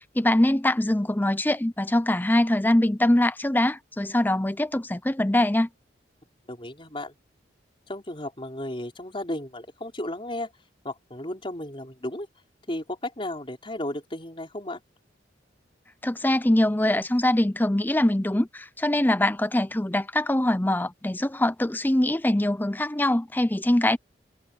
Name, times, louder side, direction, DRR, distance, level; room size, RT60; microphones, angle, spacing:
voice 1, 0.2-5.7 16.0-24.0, left 1 dB, 10° left, 0.6 m, -23 dB
voice 2, 6.5-7.1 7.9-10.5 10.8-12.3 12.7-14.8, left 1 dB, 30° left, 4.5 m, -34 dB
head